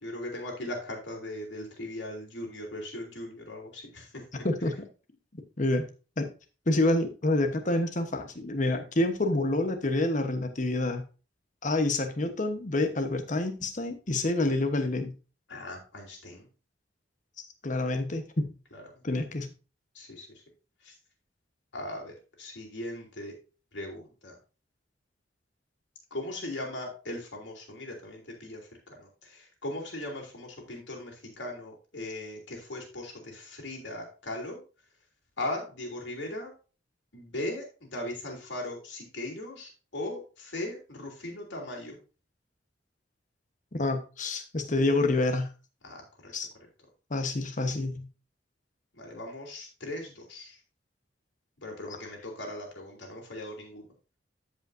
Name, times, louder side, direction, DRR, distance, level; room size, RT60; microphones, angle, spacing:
voice 1, 0.0-4.1 4.3-4.4 15.5-16.4 19.9-20.2 21.7-22.1 22.4-23.3 23.7-24.3 26.1-28.6 29.0-29.1 29.6-34.6 35.4-36.5 37.1-37.6 37.9-42.0 45.8-46.3 49.0-50.5 51.6-53.8, left 1 dB, 75° left, 0 dB, 3.1 m, -38 dB
voice 2, 5.6-5.9 6.2-6.3 6.7-11.0 11.6-15.1 17.6-18.5 19.0-19.5 43.8-45.5 46.3-46.5 47.1-48.1, left 2 dB, 45° left, 7 dB, 1.1 m, -27 dB
13.5 x 5.3 x 2.7 m, 0.34 s
head